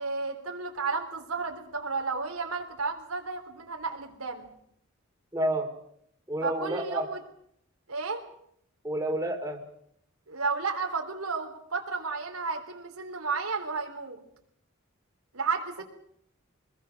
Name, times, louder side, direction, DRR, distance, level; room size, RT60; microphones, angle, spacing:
voice 1, 0.0-4.5 6.4-7.2 7.9-8.2 10.3-14.2 15.3-15.8, right 4 dB, 85° right, 3 dB, 3.6 m, -32 dB
voice 2, 5.3-5.7 6.3-7.1 8.8-9.6, right 1 dB, 15° right, 3 dB, 2.6 m, -29 dB
24.5 x 21.0 x 6.6 m, 0.70 s
head